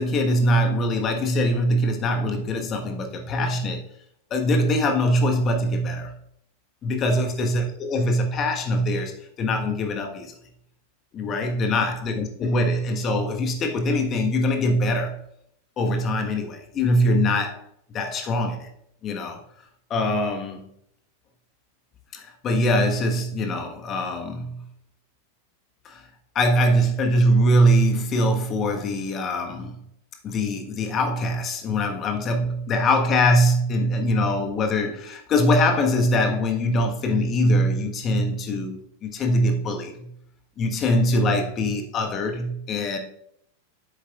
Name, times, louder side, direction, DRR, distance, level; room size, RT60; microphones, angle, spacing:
voice 1, 0.0-3.8 4.3-6.1 6.8-10.4 11.1-15.2 15.8-17.6 17.9-18.7 19.0-19.4 19.9-20.6 22.1-24.6 25.8-26.1 26.3-29.8 30.2-40.1 40.6-43.0, equal, 30° left, 4 dB, 1.3 m, -23 dB
10.5 x 7.9 x 2.4 m, 0.71 s
figure-of-eight pair, 90°, 0 cm